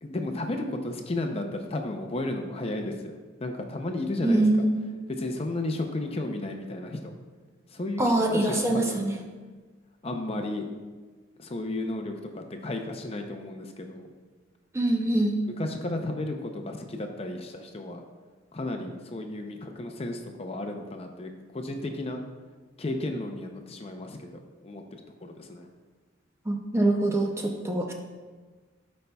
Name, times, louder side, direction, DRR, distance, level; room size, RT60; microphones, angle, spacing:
voice 1, 0.0-4.5 5.1-7.1 7.7-9.1 10.0-10.7 11.4-14.1 15.6-18.0 18.5-22.2 22.8-24.8 25.2-25.7, left 2 dB, 30° left, 4 dB, 0.5 m, -33 dB
voice 2, 4.2-4.8 8.0-9.2 14.7-15.4 26.5-27.9, right 1 dB, 15° right, 2 dB, 0.5 m, -24 dB
12.5 x 5.3 x 2.3 m, 1.4 s
head